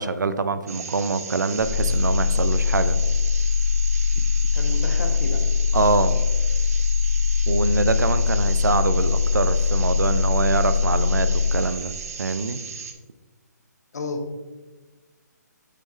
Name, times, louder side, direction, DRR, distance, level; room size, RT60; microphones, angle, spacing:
voice 1, 0.0-3.0 4.2-4.3 5.7-6.2 7.5-11.9 12.2-12.6, right 4 dB, 85° right, 12 dB, 0.5 m, -24 dB
sound 1, 0.7-12.9, right 6 dB, 55° right, 0.8 m, -36 dB
sound 2, 1.6-11.6, left 6 dB, 10° left, 1.7 m, -22 dB
voice 2, 4.5-5.4 13.9-14.4, left 2 dB, 65° left, 4 dB, 1.3 m, -31 dB
6.7 x 5.6 x 3.2 m, 1.2 s
hypercardioid pair, 145°, 10 cm